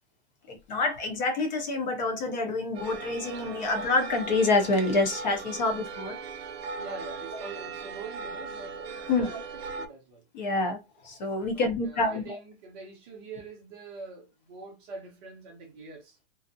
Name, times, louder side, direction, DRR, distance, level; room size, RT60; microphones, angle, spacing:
voice 1, 0.5-6.2 7.3-7.4 9.1-9.4 10.3-10.8 11.0-12.4, left 3 dB, 40° left, 0.7 m, -27 dB
sound 1, 2.7-9.9, right 4 dB, 65° right, 0.6 m, -38 dB
voice 2, 6.7-9.5 9.8-10.3 11.5-16.2, right 4 dB, 20° right, 0.5 m, -44 dB
2.6 x 2.0 x 2.6 m
hypercardioid pair, 160°, 34 cm